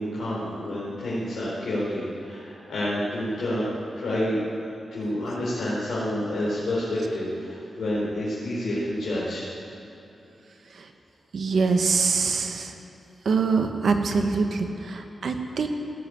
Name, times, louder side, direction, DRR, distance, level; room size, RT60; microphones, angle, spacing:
voice 1, 0.0-3.7 3.9-4.4 4.9-9.5, left 1 dB, 80° left, -9 dB, 4.0 m, -28 dB
voice 2, 11.3-12.7 13.2-15.7, right 4 dB, 70° right, 5 dB, 1.3 m, -24 dB
18.0 x 7.6 x 8.7 m, 2.9 s
cardioid pair, 45°, 0 cm